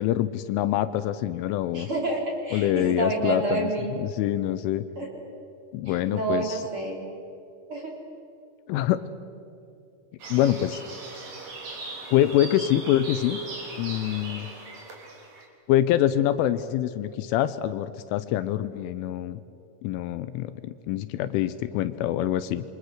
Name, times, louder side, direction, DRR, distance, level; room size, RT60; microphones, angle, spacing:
voice 1, 0.0-1.9 2.5-3.7 4.0-4.9 5.7-6.6 8.7-9.0 10.3-10.8 12.1-13.4 13.8-14.5 15.7-19.4 19.8-22.6, left 12 dB, 80° left, 12 dB, 3.1 m, -25 dB
voice 2, 1.7-3.9 5.0-5.1 5.8-7.0 7.7-7.9, right 2 dB, 30° right, -1 dB, 3.3 m, -29 dB
sound 1, 10.2-15.5, right 3 dB, 45° right, 4.8 m, -39 dB
28.0 x 24.5 x 6.5 m, 2.5 s
omnidirectional pair, 5.8 m